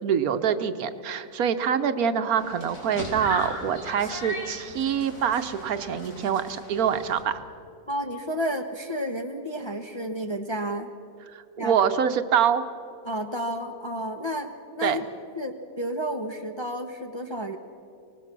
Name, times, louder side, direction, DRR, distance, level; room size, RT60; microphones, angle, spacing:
voice 1, 0.0-7.4 11.3-12.6 14.8-15.0, right 8 dB, 70° right, 10 dB, 1.3 m, -25 dB
sound 1, 2.4-7.2, left 1 dB, 80° left, 4.1 m, -37 dB
voice 2, 7.9-10.9 11.6-11.8 13.0-15.0 15.4-17.6, equal, 25° left, 5 dB, 0.8 m, -31 dB
24.5 x 18.5 x 6.0 m, 2.7 s
omnidirectional pair, 1.6 m